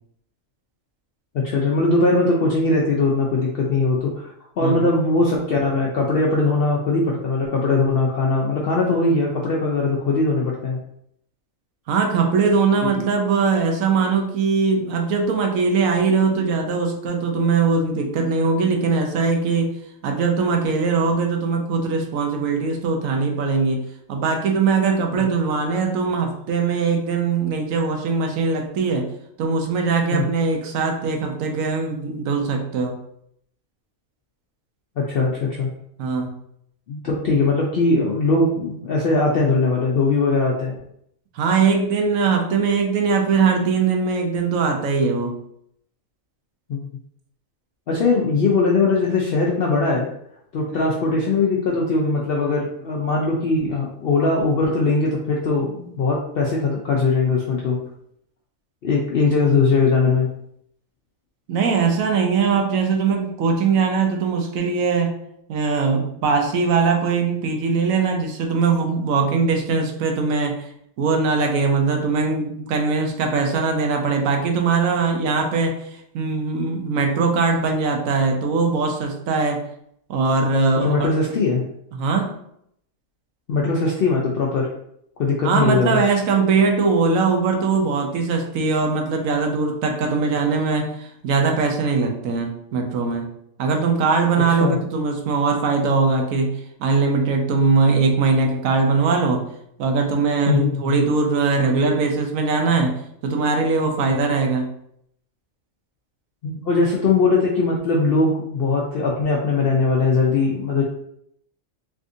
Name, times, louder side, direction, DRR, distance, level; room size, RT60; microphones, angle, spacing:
voice 1, 1.3-4.2 4.6-10.8 12.8-13.0 25.1-25.2 30.1-30.2 35.0-35.7 36.9-40.8 46.7-46.9 47.9-50.1 50.5-57.8 58.8-60.3 80.8-81.6 83.5-84.7 85.2-86.0 94.5-94.8 100.5-101.0 104.1-104.2 106.4-110.8, left 3 dB, 70° left, -3 dB, 0.5 m, -20 dB
voice 2, 11.9-19.7 20.0-23.8 24.1-29.1 29.4-33.0 36.0-36.3 41.3-45.3 50.7-50.9 61.5-65.1 65.5-70.7 71.0-75.9 76.1-79.6 80.1-81.3 81.9-82.3 85.4-93.3 93.6-96.5 96.8-99.4 99.8-104.7, right 4 dB, 75° right, 3 dB, 1.0 m, -21 dB
3.4 x 2.5 x 2.5 m, 0.71 s
omnidirectional pair, 1.5 m